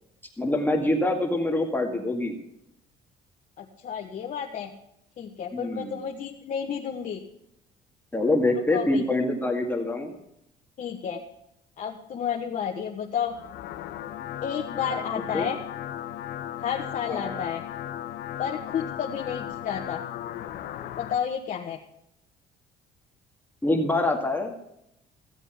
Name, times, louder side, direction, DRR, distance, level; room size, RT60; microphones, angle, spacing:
voice 1, 0.4-2.4 5.5-6.0 8.1-10.1 14.9-15.0 15.3-15.5 17.1-17.4 23.6-24.5, left 2 dB, 10° left, 1 dB, 2.0 m, -25 dB
voice 2, 3.6-4.7 5.2-7.2 8.5-9.0 10.8-11.2 11.8-13.3 14.4-15.6 16.6-17.6 18.4-20.0 21.0-21.8, left 8 dB, 50° left, 0 dB, 1.4 m, -31 dB
sound 1, 13.2-21.2, left 11 dB, 75° left, 1.2 m, -36 dB
16.0 x 8.2 x 5.7 m, 0.79 s
cardioid pair, 110°, 17 cm